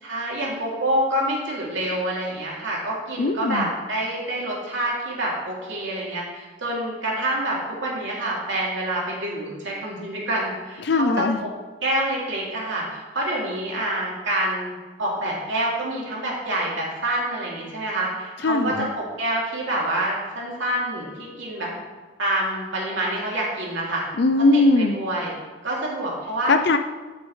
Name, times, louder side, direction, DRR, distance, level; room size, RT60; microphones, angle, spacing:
voice 1, 0.0-11.1 11.4-11.5 11.8-14.7 15.0-21.7 22.2-24.0 24.5-25.3 25.6-26.5, right 1 dB, 70° right, -4 dB, 2.8 m, -27 dB
voice 2, 3.2-3.7 10.8-11.4 18.4-18.9 24.2-25.0 26.5-26.8, left 2 dB, 55° left, 8 dB, 0.5 m, -19 dB
14.0 x 6.1 x 3.2 m, 1.3 s
head